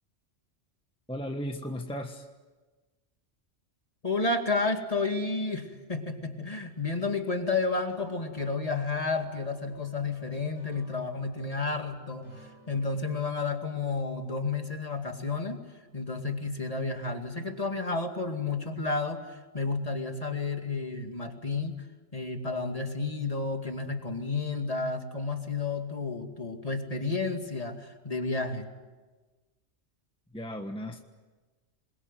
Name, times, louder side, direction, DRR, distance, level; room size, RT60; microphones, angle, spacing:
voice 1, 1.1-2.3 30.3-31.0, equal, 5° left, 4 dB, 1.4 m, -35 dB
voice 2, 4.0-15.6 15.9-21.8 22.1-28.7, left 3 dB, 30° left, 4 dB, 2.4 m, -31 dB
sound 1, 7.9-13.2, right 1 dB, 90° right, 7.3 m, -55 dB
27.0 x 22.0 x 9.3 m, 1.3 s
omnidirectional pair, 1.2 m